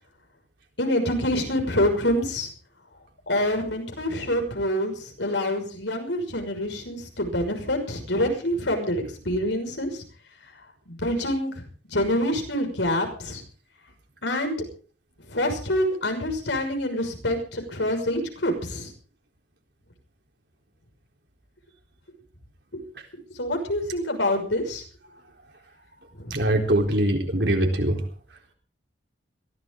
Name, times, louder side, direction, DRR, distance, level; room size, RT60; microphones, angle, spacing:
voice 1, 0.8-2.5 3.3-9.9 10.9-11.5 11.9-13.4 14.2-14.5 15.3-18.9 22.7-22.8 23.4-24.8 26.2-26.3, left 1 dB, 85° left, 4 dB, 6.1 m, -26 dB
voice 2, 26.3-28.0, right 1 dB, 70° right, 2 dB, 4.1 m, -22 dB
22.0 x 16.0 x 3.9 m, 0.40 s
head